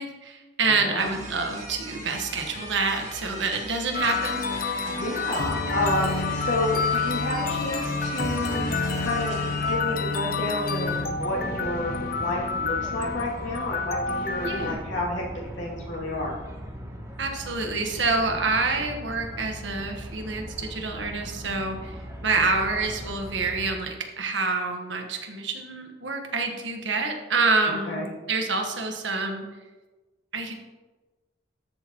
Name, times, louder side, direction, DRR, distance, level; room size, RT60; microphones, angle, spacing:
voice 1, 0.0-4.7 14.4-14.8 17.2-22.0 22.2-29.4 30.3-30.5, right 3 dB, 80° right, 3 dB, 1.4 m, -27 dB
voice 2, 0.7-1.1 4.9-15.2 15.6-16.3 27.6-28.1, left 1 dB, 80° left, -4 dB, 2.6 m, -30 dB
sound 1, 1.0-9.7, right 1 dB, 40° right, 2.0 m, -40 dB
sound 2, 3.9-14.7, left 4 dB, 50° left, 0.7 m, -28 dB
sound 3, 10.8-23.7, equal, 15° right, 1.1 m, -39 dB
13.5 x 6.5 x 3.1 m, 1.2 s
head